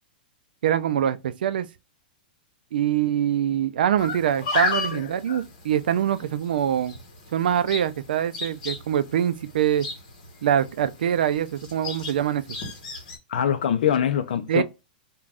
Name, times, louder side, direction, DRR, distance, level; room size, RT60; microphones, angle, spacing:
voice 1, 0.6-1.7 2.7-6.9 7.3-9.9 10.4-12.4 14.5-14.6, right 10 dB, 80° right, 0.4 m, -24 dB
sound 1, 4.0-13.2, left 3 dB, 45° left, 1.0 m, -34 dB
voice 2, 4.9-5.4 13.3-14.6, left 9 dB, 70° left, 0.4 m, -24 dB
2.4 x 2.2 x 3.2 m
supercardioid pair, 180°, 5 cm